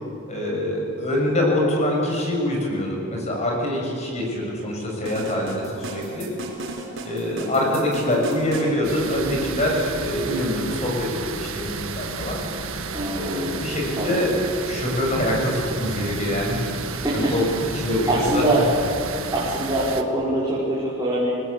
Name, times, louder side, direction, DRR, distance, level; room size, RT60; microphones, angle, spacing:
voice 1, 0.3-6.3 7.0-12.4 13.1-14.4 14.6-16.6 17.1-17.4 17.7-18.4, left 1 dB, 30° left, -1 dB, 7.2 m, -24 dB
sound 1, 5.1-8.7, right 2 dB, 60° right, 5.0 m, -35 dB
sound 2, 8.8-20.0, right 4 dB, 75° right, 1.8 m, -32 dB
voice 2, 12.9-13.6 14.0-14.2 16.9-17.3 18.1-18.6 19.3-21.3, right 1 dB, 15° right, -9 dB, 5.6 m, -24 dB
29.0 x 20.0 x 8.5 m, 2.7 s
head